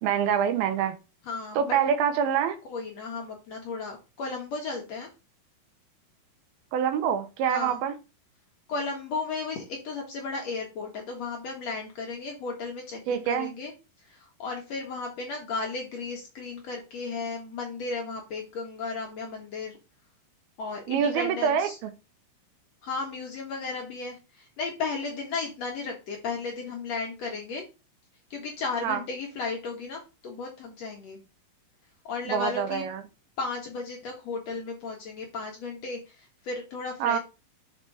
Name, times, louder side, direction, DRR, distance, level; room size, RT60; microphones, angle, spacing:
voice 1, 0.0-0.9 1.6-2.6 6.7-7.9 13.1-13.5 20.9-21.9 28.8-29.0 32.3-33.0 37.0-37.2, right 8 dB, 80° right, 2.7 m, -25 dB
voice 2, 1.3-1.8 2.7-5.1 7.5-7.8 8.7-13.7 14.1-19.8 20.6-21.8 22.8-27.6 28.3-31.2 32.1-32.9 33.4-37.2, left 4 dB, 60° left, 2.0 m, -34 dB
5.9 x 5.2 x 3.3 m
omnidirectional pair, 4.3 m